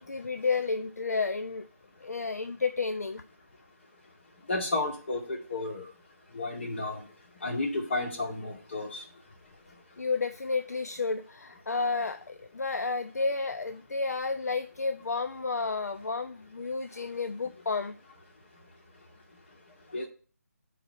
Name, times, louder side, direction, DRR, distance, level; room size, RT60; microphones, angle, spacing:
voice 1, 0.0-1.7 2.0-3.2 10.0-17.9, left 4 dB, 65° left, 9 dB, 0.6 m, -31 dB
voice 2, 4.5-5.8 6.3-7.0 7.4-8.9 19.9-20.1, left 2 dB, 45° left, 2 dB, 2.1 m, -32 dB
12.5 x 4.2 x 4.1 m, 0.41 s
figure-of-eight pair, 155°, 9 cm